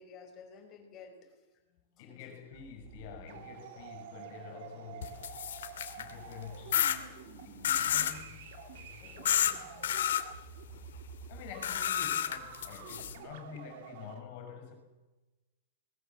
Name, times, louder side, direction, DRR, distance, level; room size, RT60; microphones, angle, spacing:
voice 1, 0.0-1.4 2.0-2.5 3.7-3.9 9.0-9.4, left 5 dB, 25° left, 3 dB, 5.3 m, -53 dB
voice 2, 2.0-5.3 5.9-6.9 7.4-10.0 11.3-14.7, left 7 dB, 45° left, 5 dB, 6.2 m, -48 dB
sound 1, 2.5-14.2, right 9 dB, 50° right, 2.7 m, -49 dB
sound 2, 5.0-6.1 6.7-7.0 7.6-8.2 9.3-9.5 9.8-10.2 11.6-13.1, left 10 dB, 80° left, 2.5 m, -30 dB
23.0 x 20.5 x 7.4 m, 1.1 s
supercardioid pair, 165°, 0 cm